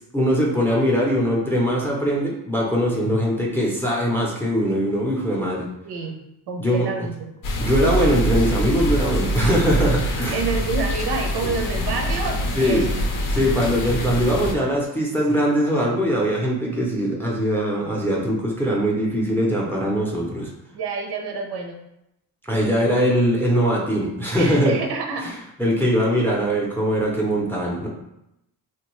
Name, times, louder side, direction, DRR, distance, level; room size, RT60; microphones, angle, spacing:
voice 1, 0.1-5.7 6.6-7.1 7.6-10.4 12.6-12.9 13.3-20.5 22.5-24.8 25.2-25.3 25.6-27.9, equal, 5° left, -3 dB, 0.5 m, -21 dB
voice 2, 5.8-6.2 6.5-7.3 10.3-12.9 20.7-21.8 24.3-25.4, right 3 dB, 80° right, 2 dB, 0.6 m, -28 dB
sound 1, 7.4-14.5, right 1 dB, 60° left, 0.6 m, -24 dB
3.2 x 2.2 x 3.0 m, 0.85 s
wide cardioid pair, 140°, 38 cm